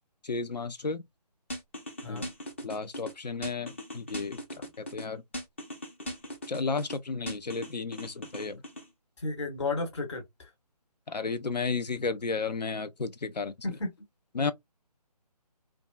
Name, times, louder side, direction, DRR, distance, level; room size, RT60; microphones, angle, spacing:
voice 1, 0.2-1.0 2.1-2.2 2.6-5.2 6.5-8.6 11.1-13.5 14.3-14.5, left 4 dB, 85° left, 0.5 m, -33 dB
sound 1, 1.5-3.1 3.4-5.0 5.3-7.0 7.3-8.9, equal, 20° left, 0.4 m, -39 dB
voice 2, 9.2-10.5 13.6-13.9, left 3 dB, 45° left, 1.2 m, -33 dB
2.6 x 2.3 x 2.3 m
figure-of-eight pair, 150°, 21 cm